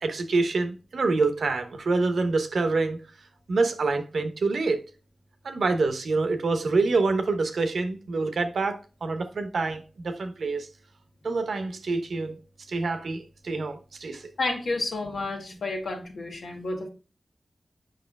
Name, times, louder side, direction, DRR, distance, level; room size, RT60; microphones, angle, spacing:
voice 1, 0.0-3.0 3.5-4.8 5.4-10.7 11.2-12.4 12.7-14.2, right 3 dB, 85° right, 1.0 m, -26 dB
voice 2, 14.4-16.9, left 2 dB, 85° left, 1.8 m, -30 dB
7.6 x 5.6 x 2.2 m
wide cardioid pair, 65°, 0 cm